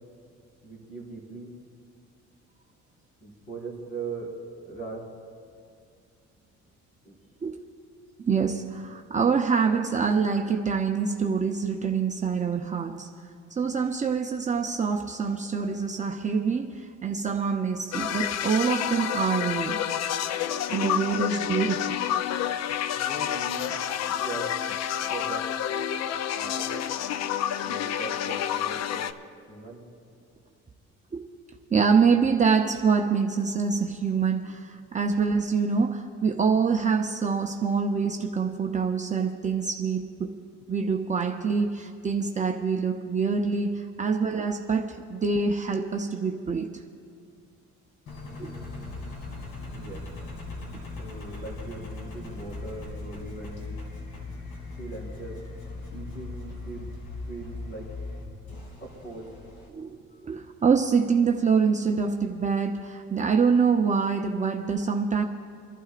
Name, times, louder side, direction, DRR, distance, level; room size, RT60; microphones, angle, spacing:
voice 1, 0.6-1.5 3.2-4.3 4.7-5.1 7.0-7.2 23.0-23.8 24.1-24.5 25.0-25.4 26.3-26.9 27.6-29.1 29.5-29.8 49.7-50.0 50.9-53.8 54.8-55.4 55.9-56.9 57.3-57.9 58.8-59.3, right 3 dB, 40° left, -2 dB, 4.0 m, -40 dB
voice 2, 8.3-13.1 13.6-19.8 20.7-22.0 31.1-31.3 31.7-40.3 40.7-46.7 48.4-48.6 50.7-50.8 59.7-65.2, right 5 dB, 25° right, 2 dB, 0.7 m, -25 dB
sound 1, 17.9-29.1, left 10 dB, 60° left, 0.5 m, -29 dB
Engine, 48.1-59.7, left 3 dB, 75° left, 2.5 m, -39 dB
29.0 x 12.0 x 2.5 m, 2.3 s
cardioid pair, 110°, 30 cm